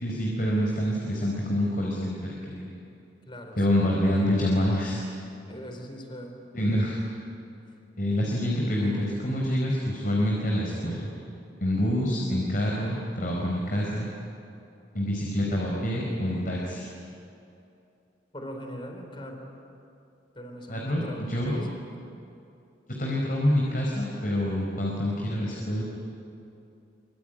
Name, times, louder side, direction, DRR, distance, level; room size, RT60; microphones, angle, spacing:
voice 1, 0.0-2.7 3.6-5.0 6.5-7.0 8.0-11.1 11.6-14.1 14.9-16.9 20.7-21.0 21.3-21.7 23.0-25.8, equal, 50° left, -2 dB, 4.5 m, -26 dB
voice 2, 3.2-3.9 5.5-6.4 18.3-19.6 20.3-21.8, equal, 30° left, 4 dB, 4.2 m, -41 dB
25.0 x 25.0 x 9.2 m, 2.7 s
head